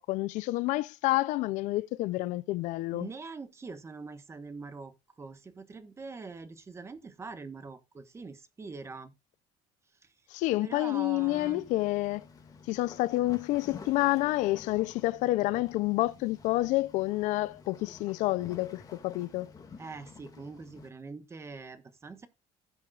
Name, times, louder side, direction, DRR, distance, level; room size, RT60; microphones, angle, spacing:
voice 1, 0.0-3.1 10.3-12.2 12.7-19.5, left 18 dB, 75° left, 0.5 m, -29 dB
voice 2, 2.9-9.1 10.6-11.6 19.8-22.3, right 4 dB, 20° right, 1.3 m, -43 dB
sound 1, 11.2-20.9, left 5 dB, 30° left, 2.1 m, -51 dB
16.0 x 7.0 x 2.4 m
cardioid pair, 130°, 13 cm